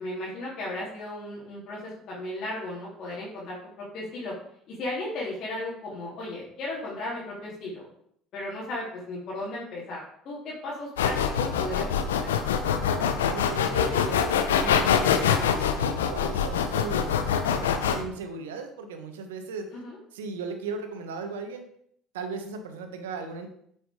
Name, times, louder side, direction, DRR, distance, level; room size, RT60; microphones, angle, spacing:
voice 1, 0.0-4.3 4.7-7.9 8.3-12.3 19.7-20.0, left 1 dB, 55° left, -7 dB, 2.8 m, -35 dB
sound 1, 11.0-18.0, left 8 dB, 85° left, 0.8 m, -24 dB
voice 2, 12.9-19.7 20.1-21.7 22.1-23.5, right 4 dB, 85° right, 6 dB, 1.3 m, -37 dB
8.0 x 6.2 x 4.9 m, 0.68 s
hypercardioid pair, 70°, 0 cm